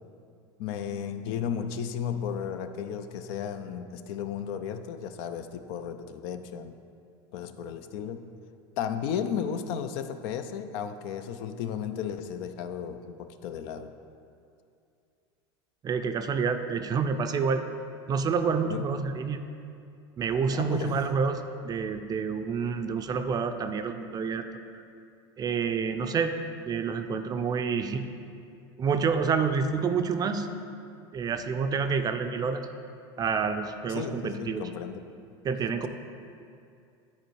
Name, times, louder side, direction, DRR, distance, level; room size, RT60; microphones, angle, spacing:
voice 1, 0.6-6.7 7.3-8.2 8.8-13.9 18.6-18.9 20.5-21.1 28.0-28.1 33.9-35.1, left 8 dB, 60° left, 9 dB, 0.5 m, -34 dB
voice 2, 15.8-17.6 18.1-19.4 20.2-24.4 25.4-26.4 26.7-28.0 28.8-30.5 31.1-32.7 33.2-34.7 35.4-35.9, right 5 dB, 25° right, 8 dB, 0.5 m, -28 dB
9.6 x 4.3 x 4.6 m, 2.5 s
hypercardioid pair, 105°, 14 cm